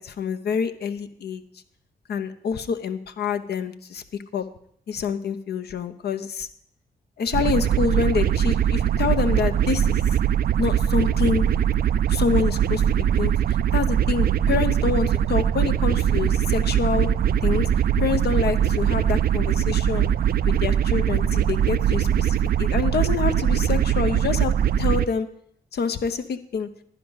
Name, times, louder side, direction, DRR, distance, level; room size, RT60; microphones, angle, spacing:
voice 1, 0.0-1.4 2.1-4.0 4.3-4.5 4.9-6.5 7.2-10.0 10.6-11.6 12.1-17.1 17.4-17.7 18.0-20.1 20.5-25.3 25.7-26.7, left 6 dB, 65° left, 9 dB, 0.8 m, -27 dB
sound 1, 7.3-25.0, right 9 dB, 60° right, 0.4 m, -21 dB
10.5 x 10.0 x 4.0 m, 0.67 s
supercardioid pair, 55°, 18 cm